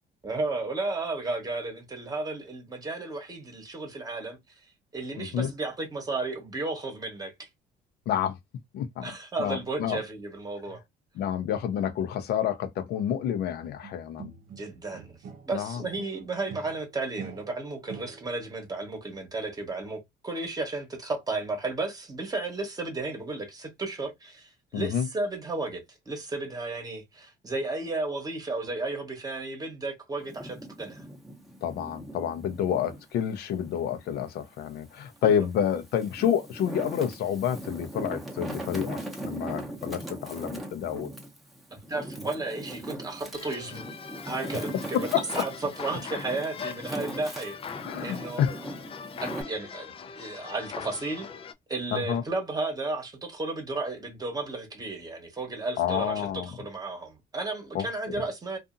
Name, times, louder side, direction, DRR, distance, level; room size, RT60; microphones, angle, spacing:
voice 1, 0.2-4.4 4.9-7.5 9.0-10.8 14.6-15.2 15.5-31.0 35.2-35.5 41.7-43.8 44.2-45.5 45.8-47.6 48.0-48.4 49.2-51.3 51.7-58.6, right 3 dB, 20° right, 1.0 m, -33 dB
voice 2, 5.2-5.5 8.1-8.4 8.7-9.1 9.4-10.0 11.2-14.3 15.5-15.8 24.7-25.1 31.6-41.1 44.9-45.4 47.8-48.6 51.9-52.2 55.8-56.5 57.7-58.2, left 9 dB, 70° left, 0.6 m, -29 dB
sound 1, 13.8-15.6 15.9-18.5, right 6 dB, 60° right, 0.7 m, -45 dB
Wind, 30.2-33.0 33.6-34.8 35.5-49.4, right 1 dB, ahead, 0.7 m, -40 dB
sound 2, 43.3-51.5, left 6 dB, 35° left, 0.4 m, -41 dB
2.6 x 2.5 x 2.4 m
cardioid pair, 110°, 17 cm